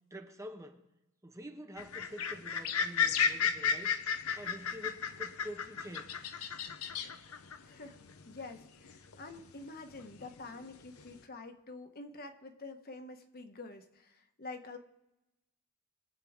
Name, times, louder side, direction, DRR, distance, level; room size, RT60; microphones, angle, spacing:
voice 1, 0.1-0.8 1.2-3.9 4.4-6.1, equal, 15° right, 1.0 m, -47 dB
sound 1, 1.8-9.6 9.9-11.2, left 6 dB, 85° left, 0.8 m, -34 dB
voice 2, 7.6-8.0 8.2-14.8, left 3 dB, 45° left, 1.2 m, -47 dB
22.5 x 8.4 x 3.7 m
head